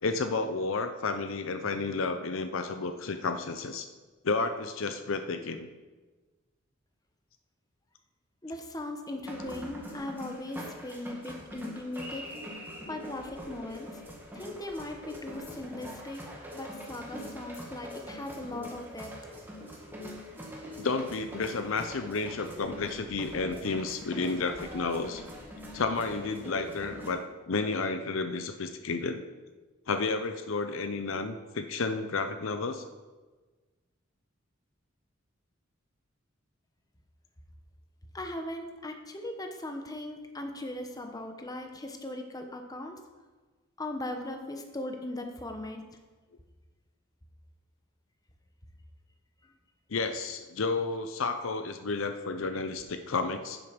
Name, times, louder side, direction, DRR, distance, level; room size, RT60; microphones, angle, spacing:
voice 1, 0.0-3.9 4.2-5.7 20.8-25.2 25.7-29.2 29.9-32.8 49.9-53.6, left 3 dB, 70° left, 8 dB, 0.6 m, -31 dB
voice 2, 8.4-12.4 12.9-14.0 14.3-19.1 38.1-43.0 43.8-46.0 49.4-49.5, left 1 dB, 20° left, 4 dB, 1.0 m, -39 dB
sound 1, 9.2-27.1, equal, 10° right, 1.7 m, -43 dB
10.5 x 7.5 x 5.2 m, 1.3 s
head